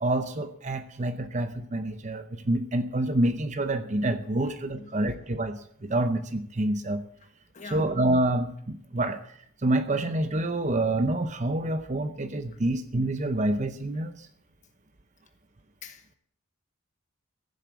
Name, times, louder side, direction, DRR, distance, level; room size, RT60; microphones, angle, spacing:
voice 1, 0.0-7.0 7.6-14.3, right 1 dB, 35° right, 0.7 m, -27 dB
voice 2, 4.8-5.2 7.5-7.9 15.8-16.0, left 4 dB, 35° left, 1.5 m, -44 dB
15.0 x 7.4 x 8.2 m
head